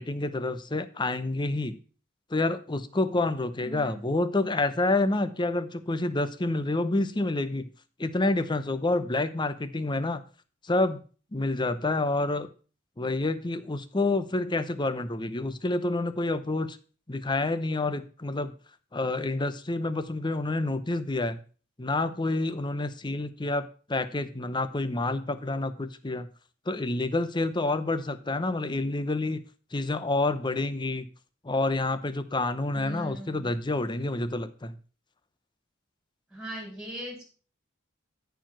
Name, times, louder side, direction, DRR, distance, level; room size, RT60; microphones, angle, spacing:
voice 1, 0.0-1.8 2.3-7.7 8.0-10.2 10.6-11.0 11.3-12.5 13.0-16.8 17.1-18.5 18.9-21.4 21.8-26.3 26.7-29.4 29.7-31.1 31.4-34.8, left 2 dB, 20° left, 12 dB, 0.7 m, -28 dB
voice 2, 3.6-4.0 32.7-33.5 36.3-37.2, right 1 dB, 5° right, 1 dB, 4.2 m, -39 dB
13.5 x 4.7 x 6.1 m, 0.38 s
head